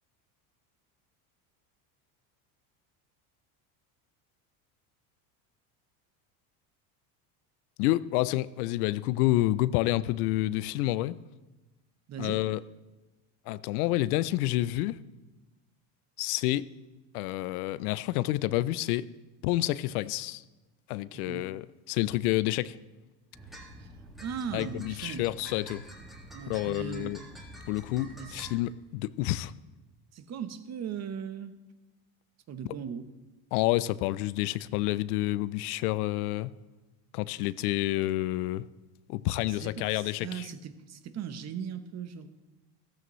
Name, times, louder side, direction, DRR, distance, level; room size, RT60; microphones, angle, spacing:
voice 1, 7.8-11.2 12.2-12.6 13.5-15.0 16.2-16.7 17.1-19.1 19.4-20.4 20.9-22.8 24.5-25.8 26.5-27.2 27.7-29.5 32.6-32.7 33.5-36.5 37.1-38.7 39.1-40.5, left 16 dB, 80° left, 0.6 m, -29 dB
voice 2, 12.1-12.4 21.1-21.4 23.8-23.9 24.2-25.3 26.3-27.1 28.2-28.4 30.1-31.6 32.5-33.1 39.5-42.3, right 7 dB, 35° right, 1.0 m, -38 dB
sound 1, 23.3-28.6, right 1 dB, ahead, 1.9 m, -47 dB
14.5 x 14.0 x 3.1 m
supercardioid pair, 105°, 44 cm